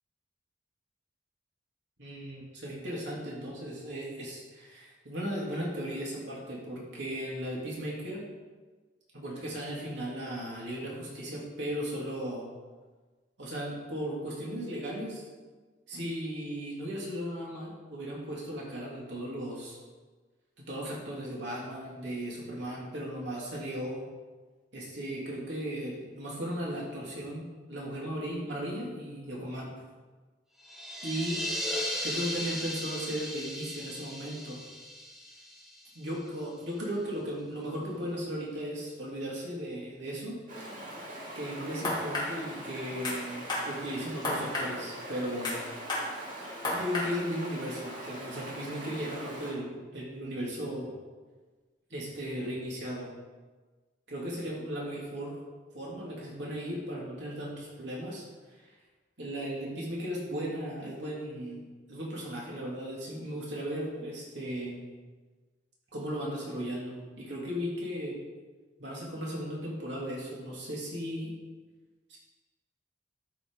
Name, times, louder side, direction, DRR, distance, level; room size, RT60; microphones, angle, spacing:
voice 1, 2.0-8.2 9.1-12.5 13.4-15.2 15.9-19.8 20.6-24.1 24.7-29.7 31.0-31.4 32.0-34.6 35.9-40.4 41.3-45.6 46.7-50.9 51.9-53.1 54.1-55.4 55.7-58.2 58.5-58.6 59.2-64.9 65.9-68.2 68.8-71.3 72.1-72.2, equal, 70° right, -4 dB, 3.0 m, -36 dB
sound 1, 30.6-36.2, left 1 dB, ahead, 1.4 m, -36 dB
Stream, 40.5-49.5, right 1 dB, 45° right, 2.3 m, -43 dB
sound 2, 41.8-42.3 43.0-43.2 43.5-43.7 44.2-44.7 45.4-45.6 45.9-46.1 46.6-47.1, left 2 dB, 25° left, 2.8 m, -31 dB
12.5 x 6.6 x 4.8 m, 1.3 s
head